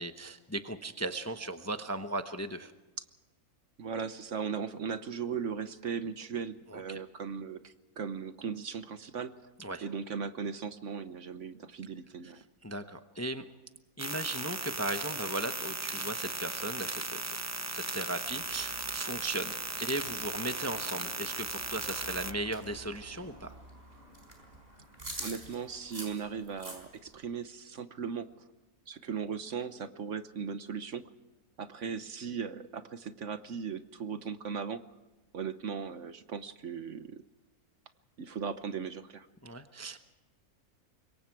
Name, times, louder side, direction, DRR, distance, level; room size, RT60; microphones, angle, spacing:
voice 1, 0.0-2.7 6.7-7.0 9.6-9.9 12.2-12.3 12.6-13.4 14.0-17.2 17.7-23.6 39.4-40.0, right 2 dB, 15° left, 8 dB, 0.7 m, -37 dB
voice 2, 3.8-9.3 9.8-12.4 25.2-28.3 28.9-31.1 31.6-34.8 35.3-37.2 38.2-39.3, right 6 dB, 55° right, 11 dB, 1.2 m, -38 dB
sound 1, 14.0-22.3, right 2 dB, 20° right, 0.4 m, -37 dB
sound 2, 18.2-27.2, right 1 dB, 40° right, 5.0 m, -48 dB
26.0 x 22.5 x 4.7 m, 1.1 s
omnidirectional pair, 1.6 m